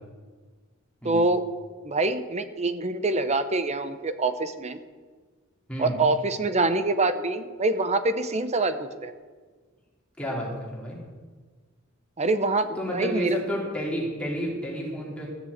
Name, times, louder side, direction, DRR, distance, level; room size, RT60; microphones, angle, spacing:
voice 1, 1.0-1.4 1.8-4.8 5.8-9.1 12.2-13.4, right 2 dB, 35° right, 11 dB, 0.8 m, -25 dB
voice 2, 10.2-11.0 12.7-15.3, equal, 5° left, -4 dB, 3.4 m, -30 dB
14.0 x 7.0 x 8.0 m, 1.4 s
head